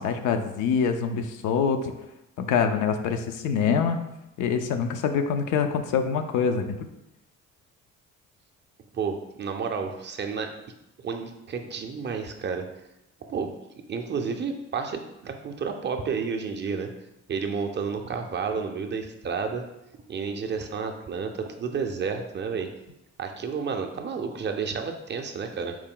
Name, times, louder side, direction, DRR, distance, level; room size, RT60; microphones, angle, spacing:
voice 1, 0.0-1.9 2.4-4.0 4.4-6.8, left 6 dB, 80° left, 7 dB, 0.5 m, -25 dB
voice 2, 8.9-10.5 11.0-12.7 13.3-13.5 13.9-16.9 17.3-19.6 20.1-22.7 23.2-25.8, right 5 dB, 35° right, 4 dB, 0.5 m, -31 dB
4.5 x 2.2 x 3.7 m, 0.90 s
cardioid pair, 90°, 30 cm